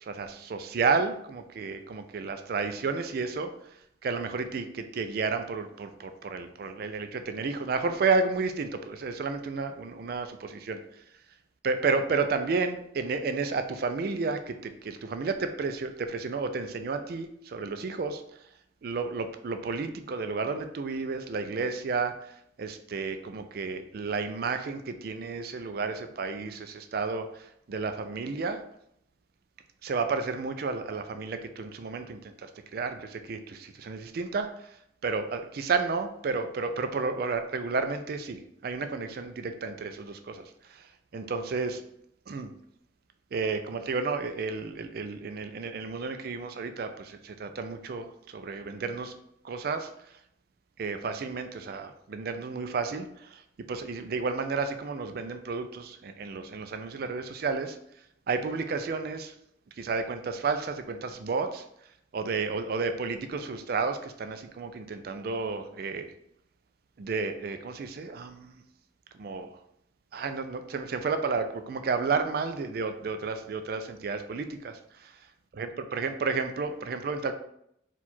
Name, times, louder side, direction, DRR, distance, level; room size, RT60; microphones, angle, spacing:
voice 1, 0.0-3.5 4.0-10.8 11.6-18.2 18.8-28.6 29.8-34.8 35.0-41.8 42.3-42.5 43.3-49.1 49.4-49.9 50.8-53.4 53.7-57.8 58.3-59.3 59.8-61.6 62.1-66.1 67.0-68.6 69.2-69.6 70.1-75.1 75.6-77.3, right 4 dB, 55° right, 8 dB, 0.4 m, -32 dB
4.4 x 2.4 x 4.1 m, 0.74 s
head